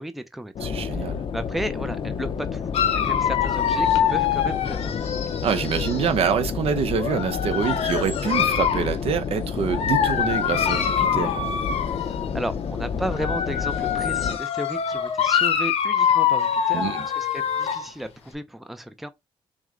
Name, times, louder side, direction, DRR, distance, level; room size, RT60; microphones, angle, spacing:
voice 1, 0.0-5.2 12.0-19.1, right 1 dB, ahead, 0.4 m, -34 dB
sound 1, 0.6-14.4, left 6 dB, 55° left, 0.6 m, -30 dB
voice 2, 0.6-1.2 5.4-11.3 16.7-17.0, right 7 dB, 70° right, 0.7 m, -26 dB
Dog, 2.7-6.1 7.0-8.9 9.7-12.3 13.0-17.9, left 8 dB, 75° left, 0.9 m, -24 dB
6.2 x 2.1 x 3.7 m
cardioid pair, 135°, 11 cm